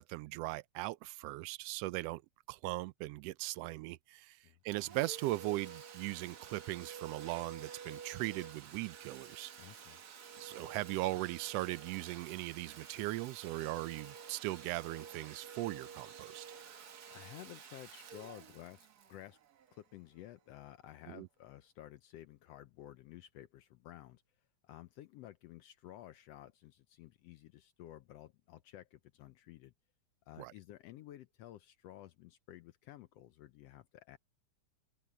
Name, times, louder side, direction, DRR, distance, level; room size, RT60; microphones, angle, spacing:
voice 1, 0.0-2.2 2.5-4.4 4.6-9.5 10.4-16.5 21.1-21.3 30.4-30.5, right 18 dB, 85° right, 1.4 m, -39 dB
Domestic sounds home sounds, 4.7-20.2, right 7 dB, 55° right, 1.1 m, -51 dB
voice 2, 9.6-10.0 17.1-19.4 19.7-24.2 24.6-29.7 30.3-34.2, left 13 dB, 75° left, 1.5 m, -53 dB
open air
omnidirectional pair, 3.3 m